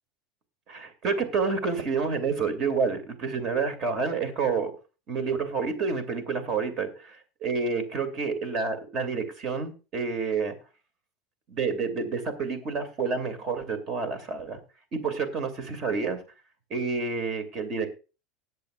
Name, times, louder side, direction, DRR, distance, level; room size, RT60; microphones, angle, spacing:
voice 1, 0.7-4.7 5.1-10.5 11.5-14.6 14.9-16.2 16.7-17.9, right 4 dB, 35° right, 9 dB, 2.4 m, -29 dB
19.5 x 8.1 x 2.4 m, 0.32 s
supercardioid pair, 160°, 0 cm